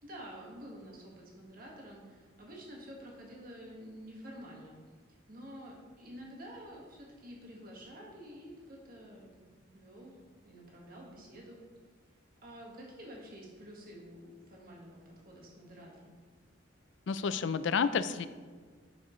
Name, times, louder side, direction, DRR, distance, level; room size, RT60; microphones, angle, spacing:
voice 1, 0.0-4.8 5.1-9.5 9.7-10.2 10.4-11.6 12.4-16.2, equal, 50° right, -2 dB, 1.5 m, -49 dB
voice 2, 17.1-18.3, left 6 dB, 70° left, 13 dB, 0.4 m, -30 dB
9.7 x 7.0 x 3.1 m, 1.5 s
head